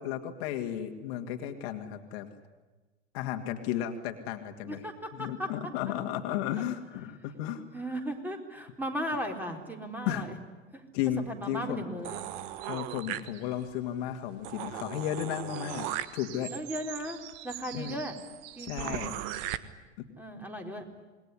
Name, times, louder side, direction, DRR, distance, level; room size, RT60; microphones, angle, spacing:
voice 1, 0.0-2.3 3.1-4.8 5.1-7.6 10.0-10.3 10.9-11.8 12.7-16.5 17.7-18.0 18.6-19.2 20.0-20.1, left 10 dB, 55° left, 6 dB, 2.3 m, -34 dB
voice 2, 7.7-10.4 10.7-10.8 11.2-12.2 16.5-18.2 18.6-19.2 20.2-20.8, equal, 5° right, 3 dB, 4.1 m, -36 dB
sound 1, 12.0-13.7 14.1-14.2 14.4-19.6, right 13 dB, 50° right, 1.5 m, -39 dB
27.0 x 20.5 x 10.0 m, 1.2 s
hypercardioid pair, 95°, 37 cm